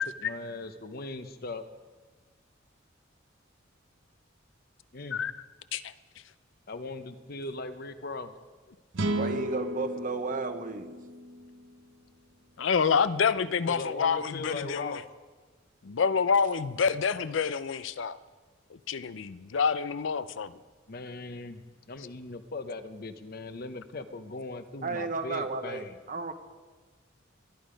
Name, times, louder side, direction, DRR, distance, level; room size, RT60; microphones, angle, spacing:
voice 1, 0.2-1.6 4.9-5.2 6.7-8.3 13.7-15.0 20.9-26.0, left 2 dB, 50° left, 10 dB, 0.9 m, -39 dB
sound 1, 8.9-12.3, right 1 dB, 85° right, 1.1 m, -34 dB
voice 2, 9.2-11.0 24.8-26.3, right 4 dB, 45° right, 8 dB, 0.9 m, -33 dB
voice 3, 12.6-15.0 15.8-18.2 18.9-20.5, left 6 dB, 75° left, 15 dB, 0.5 m, -27 dB
21.5 x 10.5 x 5.2 m, 1.4 s
head